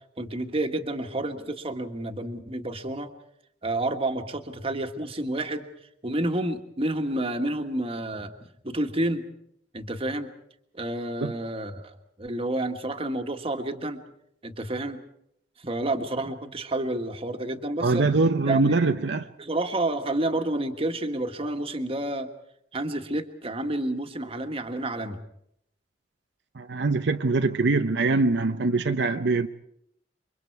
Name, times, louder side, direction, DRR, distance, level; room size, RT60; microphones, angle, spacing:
voice 1, 0.2-3.1 3.6-5.7 6.0-8.3 8.6-9.2 9.7-10.3 10.7-11.9 12.2-14.0 14.4-15.0 15.6-18.1 18.5-18.8 19.4-22.3 22.7-25.2, right 1 dB, 35° right, 1.6 m, -29 dB
voice 2, 17.8-19.3 26.5-29.5, right 3 dB, 75° right, 0.8 m, -23 dB
29.0 x 23.5 x 4.7 m
head